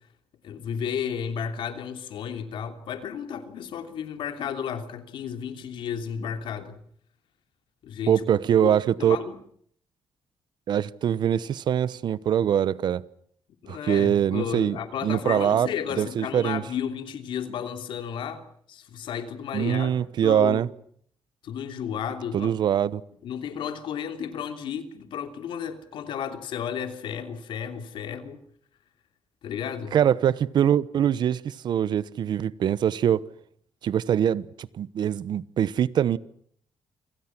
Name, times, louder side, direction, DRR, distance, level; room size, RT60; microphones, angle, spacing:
voice 1, 0.4-6.8 7.8-8.2 8.6-9.3 13.6-19.9 20.2-20.6 21.4-22.5 23.2-28.4 29.4-30.0, left 8 dB, 80° left, 3.1 m, -33 dB
voice 2, 8.1-9.2 10.7-13.0 13.7-14.8 15.0-15.7 16.0-16.6 19.5-20.7 22.3-23.0 29.9-33.3 33.8-36.2, right 9 dB, 60° right, 1.0 m, -23 dB
28.5 x 26.5 x 6.1 m
cardioid pair, 145°, 8 cm